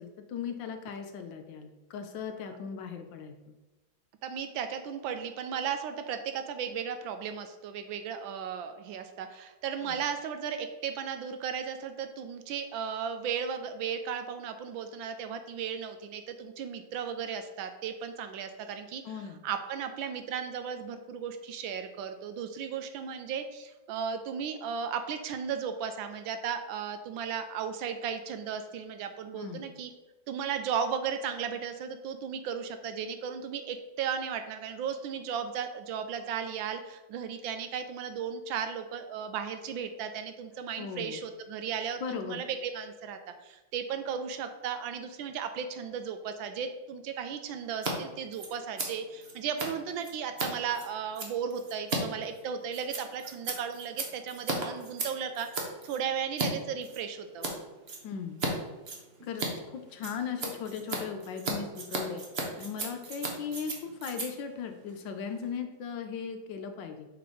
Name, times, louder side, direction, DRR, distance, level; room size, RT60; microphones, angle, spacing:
voice 1, 0.0-3.3 9.8-10.0 19.0-19.4 29.3-29.7 40.8-41.2 42.0-42.4 58.0-58.4 59.2-62.2 62.6-67.1, left 6 dB, 70° left, 6 dB, 1.3 m, -38 dB
voice 2, 4.2-19.0 19.4-29.9 30.3-57.5, right 7 dB, 75° right, 8 dB, 1.3 m, -35 dB
Scissors, 47.7-47.9 48.2-56.5 56.8-57.5 57.9-58.5 58.8-65.6, right 3 dB, 45° right, 0.8 m, -36 dB
5.6 x 3.7 x 5.1 m, 1.1 s
omnidirectional pair, 2.2 m